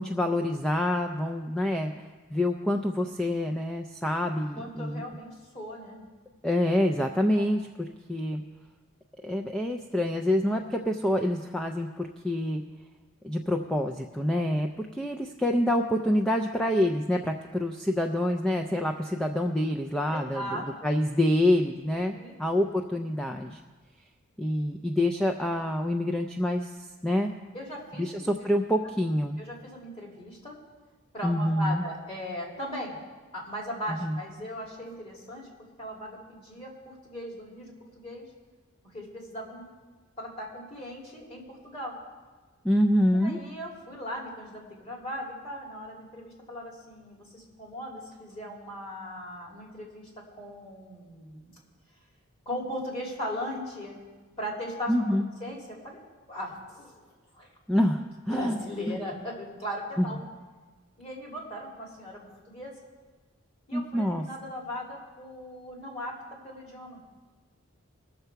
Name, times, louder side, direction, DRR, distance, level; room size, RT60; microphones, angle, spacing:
voice 1, 0.0-2.0 2.3-5.0 6.4-7.6 8.1-8.4 9.2-12.6 13.2-22.1 22.4-23.6 24.4-26.8 27.0-27.3 28.0-29.4 31.2-31.8 33.9-34.1 42.6-43.4 54.9-55.3 57.7-58.6 60.0-60.1 63.7-64.2, left 1 dB, 5° left, 2 dB, 0.3 m, -26 dB
voice 2, 4.6-6.0 7.4-7.5 20.1-20.9 22.1-22.4 27.5-28.3 29.4-30.6 31.1-33.0 33.3-35.5 35.8-38.2 38.9-39.7 40.2-42.0 43.1-51.5 52.5-54.0 54.4-54.9 55.4-56.0 56.3-56.9 57.3-57.5 58.3-60.2 61.0-62.8 63.7-67.0, equal, 30° left, -2 dB, 2.5 m, -38 dB
20.0 x 6.8 x 4.6 m, 1.3 s
head